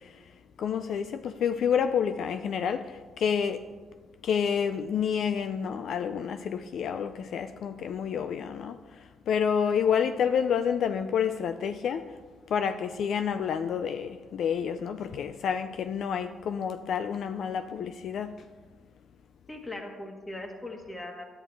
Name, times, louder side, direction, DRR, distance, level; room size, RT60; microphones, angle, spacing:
voice 1, 0.6-3.6 4.2-8.8 9.3-12.0 12.5-18.3, left 7 dB, 65° left, 0.4 m, -29 dB
voice 2, 19.5-21.3, left 2 dB, 20° left, 1.6 m, -39 dB
10.5 x 9.1 x 3.4 m
cardioid pair, 90°, 0 cm